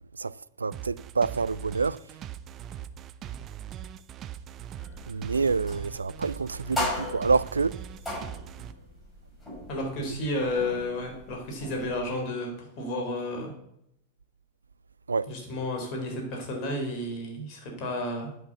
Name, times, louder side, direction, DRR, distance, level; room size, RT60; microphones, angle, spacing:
voice 1, 0.2-2.0 5.1-7.8 15.1-15.3, right 4 dB, 75° right, 0.3 m, -27 dB
sound 1, 0.7-8.7, right 10 dB, 30° right, 0.6 m, -40 dB
sound 2, 4.8-12.1, left 1 dB, 10° left, 5.1 m, -38 dB
voice 2, 9.7-13.5 15.3-18.3, left 1 dB, 40° left, 3.9 m, -32 dB
9.0 x 6.1 x 8.0 m
figure-of-eight pair, 90°, 0 cm